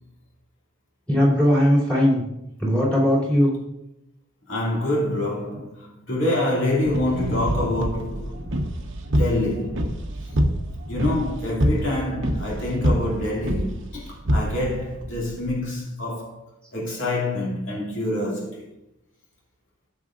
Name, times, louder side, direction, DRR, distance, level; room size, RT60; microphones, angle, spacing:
voice 1, 1.1-2.2 2.6-3.5, equal, 5° left, 3.0 m, -19 dB
voice 2, 4.5-8.4 9.1-10.0 10.9-16.5 16.7-18.6, left 1 dB, 60° left, 2.5 m, -26 dB
sound 1, 6.9-15.5, equal, 60° right, 1.0 m, -26 dB
14.5 x 6.8 x 2.5 m
head